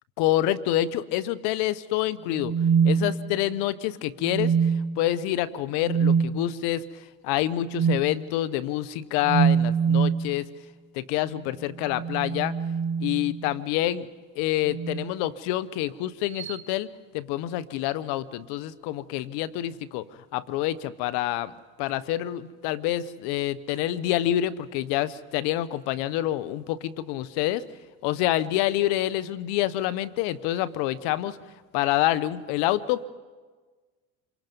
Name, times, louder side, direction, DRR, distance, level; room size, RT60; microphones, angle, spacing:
voice 1, 0.2-2.5 2.8-10.5 10.9-12.5 13.0-14.1 14.4-21.5 21.8-27.6 28.0-31.4 31.7-33.0, left 14 dB, 70° left, 16 dB, 1.0 m, -27 dB
sound 1, 2.3-3.6 4.2-5.0 5.8-6.3 7.7-8.1 9.2-10.2 11.7-13.6 14.7-15.1 16.3-16.6, right 6 dB, 45° right, 1.9 m, -24 dB
26.5 x 23.5 x 5.4 m, 1.4 s
supercardioid pair, 85°, 41 cm